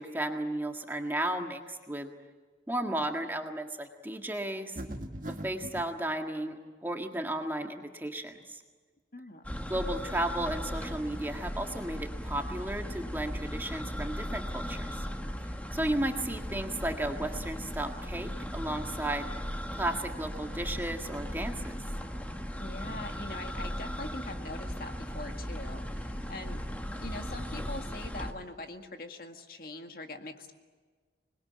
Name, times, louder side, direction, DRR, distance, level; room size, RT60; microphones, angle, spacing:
voice 1, 0.0-2.1 2.7-4.8 5.3-8.6 9.7-15.1 15.7-19.3 19.7-21.8, right 1 dB, 10° right, 3 dB, 1.8 m, -34 dB
sound 1, 4.8-5.9, right 1 dB, 45° right, 1.9 m, -39 dB
voice 2, 9.1-9.4 22.6-30.5, left 2 dB, 55° left, 5 dB, 2.0 m, -43 dB
sound 2, 9.4-28.3, equal, 10° left, 1.5 m, -37 dB
26.5 x 21.0 x 8.8 m, 1.4 s
head